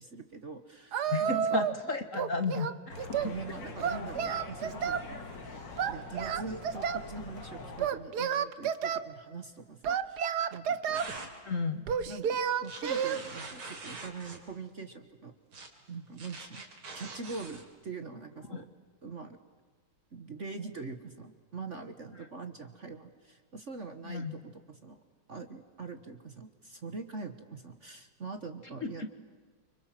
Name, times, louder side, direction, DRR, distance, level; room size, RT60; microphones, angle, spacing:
voice 1, 0.0-1.6 3.2-5.2 5.9-11.1 12.0-15.3 15.9-16.6 16.9-18.7 19.0-19.4 20.1-25.0 25.3-29.1, right 4 dB, 40° right, 8 dB, 1.4 m, -43 dB
Singing, 0.9-1.8 2.1-3.4 3.8-5.1 5.8-7.1 7.8-9.0 9.8-11.1 11.9-13.2, right 7 dB, 55° right, 1.4 m, -31 dB
voice 2, 1.1-3.3 11.4-11.8 18.5-18.6 24.0-24.4 28.8-29.1, left 4 dB, 40° left, 8 dB, 1.6 m, -34 dB
sound 1, 2.9-7.9, left 2 dB, 55° left, 3.2 m, -43 dB
sound 2, 10.9-11.3 12.6-14.4 15.5-15.7 16.2-17.6, right 3 dB, 80° right, 4.2 m, -44 dB
29.5 x 26.0 x 7.6 m, 1.5 s
omnidirectional pair, 2.3 m